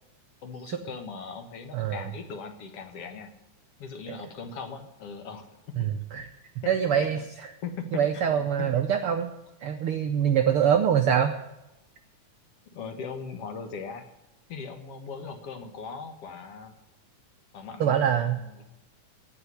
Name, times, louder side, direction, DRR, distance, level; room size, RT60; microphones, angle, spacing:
voice 1, 0.4-3.3 3.8-5.6 7.0-7.1 7.6-8.7 11.1-11.2 12.7-14.1 14.5-16.7 17.5-18.6, left 5 dB, 55° left, 7 dB, 2.0 m, -39 dB
voice 2, 1.7-2.0 4.1-4.2 5.8-6.3 6.7-7.2 7.9-9.3 9.6-11.3 17.8-18.4, right 8 dB, 85° right, 6 dB, 1.2 m, -24 dB
17.0 x 5.8 x 9.8 m, 0.94 s
omnidirectional pair, 3.6 m